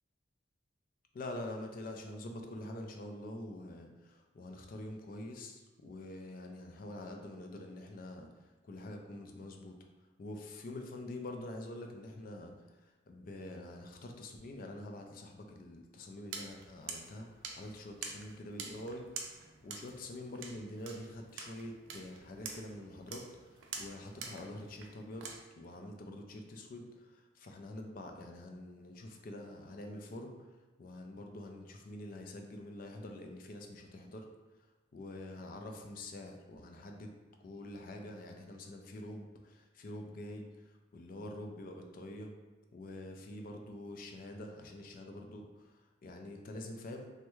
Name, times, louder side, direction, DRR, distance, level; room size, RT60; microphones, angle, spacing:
voice 1, 1.1-8.3 8.6-9.8 10.2-12.5 13.1-17.3 17.6-19.1 19.6-23.5 23.8-25.3 25.6-30.3 30.8-34.3 34.9-37.1 37.4-40.4 40.9-42.3 42.7-45.5 46.0-47.1, left 1 dB, 45° left, 3 dB, 0.4 m, -46 dB
sound 1, 16.3-25.4, right 5 dB, 80° right, 0.4 m, -47 dB
3.4 x 2.1 x 3.0 m, 1.2 s
head